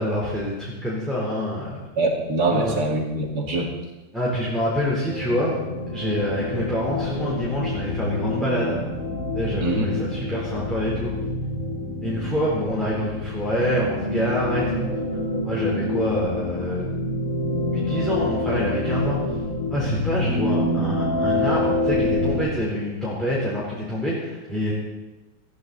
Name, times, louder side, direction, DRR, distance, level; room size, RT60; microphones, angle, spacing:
voice 1, 0.0-1.8 2.5-2.8 4.1-5.6 5.9-8.8 9.3-11.1 12.0-14.9 15.4-16.9 17.7-19.2 19.7-24.7, equal, ahead, -7 dB, 3.7 m, -26 dB
voice 2, 2.0-3.7 9.6-9.9, right 2 dB, 55° right, 0 dB, 2.9 m, -23 dB
sound 1, 5.1-22.5, left 1 dB, 45° left, 2.3 m, -27 dB
20.0 x 14.5 x 4.1 m, 1.1 s
omnidirectional pair, 2.1 m